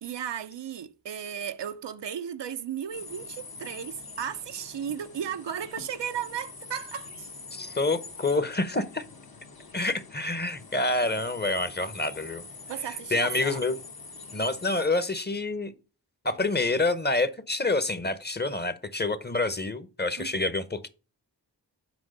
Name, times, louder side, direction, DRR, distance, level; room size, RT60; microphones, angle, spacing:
voice 1, 0.0-7.3 12.7-13.8 20.2-20.5, right 8 dB, 80° right, 0.7 m, -35 dB
sound 1, 2.9-14.9, left 4 dB, 60° left, 1.4 m, -45 dB
voice 2, 7.5-9.0 9.7-12.4 13.1-13.7 14.3-15.7 16.2-20.9, left 2 dB, 25° left, 0.9 m, -27 dB
6.1 x 4.6 x 6.6 m
cardioid pair, 50°, 42 cm